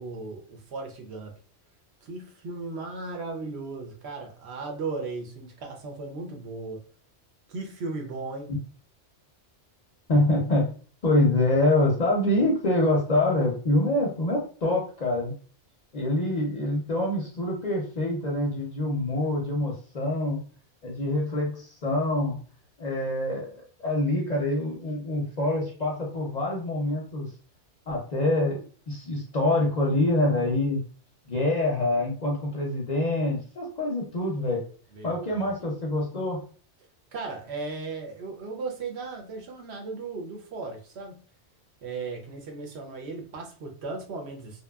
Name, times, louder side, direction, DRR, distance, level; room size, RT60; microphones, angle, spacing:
voice 1, 0.0-1.3 2.0-6.8 7.5-8.5 34.9-35.5 37.1-41.2 41.8-44.6, right 3 dB, 70° right, 2 dB, 0.9 m, -36 dB
voice 2, 10.1-10.7 11.0-15.3 15.9-20.4 20.8-22.4 22.8-27.3 27.9-30.8 31.3-34.6 35.0-36.4, left 1 dB, 50° left, -2 dB, 0.5 m, -25 dB
2.8 x 2.2 x 2.2 m, 0.40 s
omnidirectional pair, 1.2 m